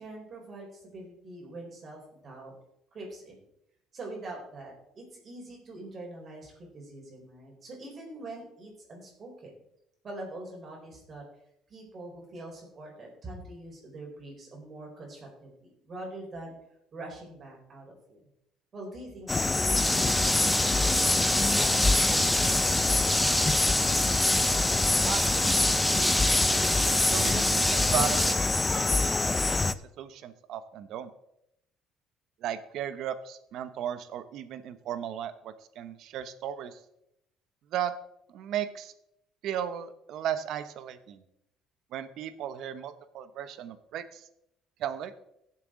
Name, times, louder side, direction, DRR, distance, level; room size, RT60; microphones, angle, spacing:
voice 1, 0.0-2.5 2.9-3.4 3.9-9.5 10.0-11.2 11.7-16.6 16.9-18.3 18.7-19.6 19.9-23.5, right 2 dB, 40° right, -1 dB, 4.2 m, -44 dB
sound 1, 19.3-29.7, left 3 dB, 20° left, 0.5 m, -26 dB
sound 2, 19.8-28.4, equal, ahead, 1.0 m, -27 dB
voice 2, 24.8-25.6 27.1-28.3 28.7-31.1 32.4-36.8 37.7-37.9 38.3-38.9 39.4-41.2 41.9-44.2 44.8-45.1, right 10 dB, 65° right, 12 dB, 0.9 m, -36 dB
16.5 x 7.5 x 3.8 m, 0.80 s
cardioid pair, 110°, 0 cm